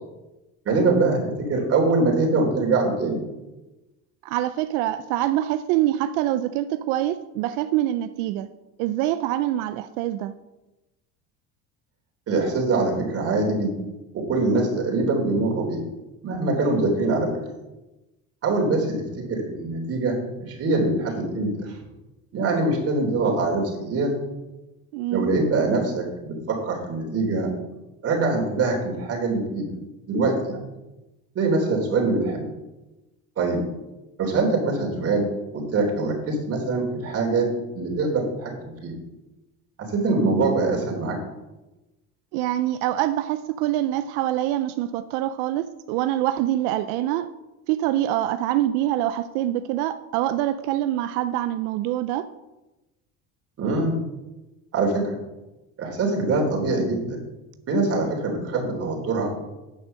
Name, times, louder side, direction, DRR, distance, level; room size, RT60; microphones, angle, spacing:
voice 1, 0.6-3.2 12.3-13.8 14.1-15.8 16.2-17.3 18.4-21.8 22.3-24.1 25.1-27.5 28.0-29.7 30.1-30.6 31.3-32.4 33.4-33.6 34.2-35.2 35.5-37.5 37.7-38.9 39.8-41.2 53.6-54.0 54.7-55.2 55.8-57.2 57.7-59.3, right 3 dB, 45° right, 0 dB, 3.4 m, -23 dB
voice 2, 4.2-8.5 8.8-10.3 24.9-25.3 42.3-47.3 47.7-52.3, right 13 dB, 90° right, 11 dB, 0.5 m, -25 dB
9.2 x 6.2 x 6.6 m, 1.0 s
cardioid pair, 120°, 34 cm